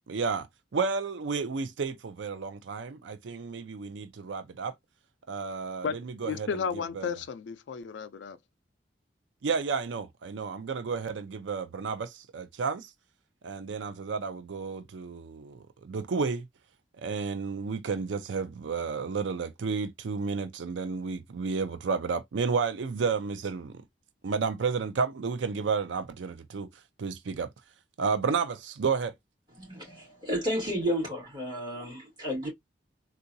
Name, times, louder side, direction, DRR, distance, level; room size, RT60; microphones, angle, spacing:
voice 1, 0.1-0.5 0.7-4.7 5.3-6.5 6.9-7.1 9.4-12.9 13.4-16.5 17.0-23.8 24.2-26.7 27.0-27.5 28.0-29.1, right 5 dB, 85° right, 0.5 m, -31 dB
voice 2, 5.8-8.4, left 6 dB, 75° left, 0.4 m, -33 dB
voice 3, 29.6-32.5, equal, 25° right, 2.5 m, -32 dB
3.7 x 2.4 x 2.6 m
head